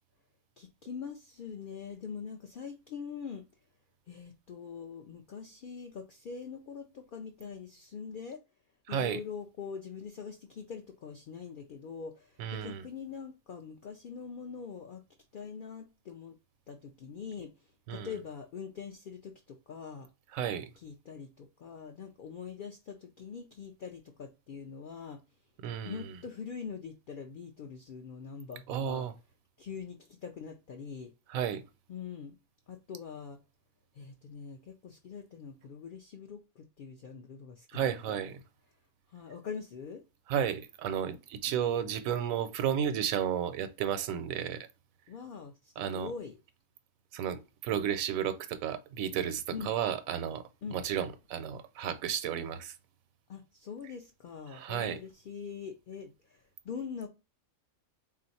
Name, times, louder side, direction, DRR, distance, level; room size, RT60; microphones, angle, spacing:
voice 1, 0.6-3.4 4.1-8.4 8.9-15.0 15.3-16.4 16.7-17.5 17.9-20.1 20.8-25.2 25.8-29.1 29.6-31.1 31.9-32.4 32.7-33.4 33.9-38.2 39.1-40.0 45.1-46.4 49.5-49.7 50.6-50.8 53.3-57.1, left 6 dB, 65° left, 0.5 m, -43 dB
voice 2, 8.9-9.2 12.4-12.9 17.9-18.2 20.3-20.7 25.6-26.2 28.7-29.1 31.3-31.6 37.7-38.4 40.3-44.7 45.8-46.1 47.1-52.8 54.5-55.0, right 9 dB, 85° right, 1.0 m, -33 dB
3.7 x 2.5 x 4.0 m
omnidirectional pair, 1.4 m